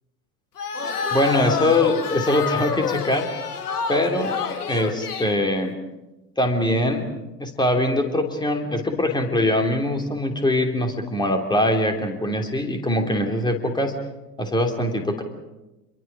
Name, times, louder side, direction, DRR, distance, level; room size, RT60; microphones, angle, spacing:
sound 1, 0.6-5.4, left 6 dB, 70° left, 2.0 m, -28 dB
voice 1, 1.1-3.3 3.9-4.4 4.7-5.8 6.4-7.1 7.4-13.9 14.4-15.2, left 1 dB, 10° left, 4 dB, 3.1 m, -22 dB
28.5 x 22.5 x 5.0 m, 1.0 s
figure-of-eight pair, 85°, 48 cm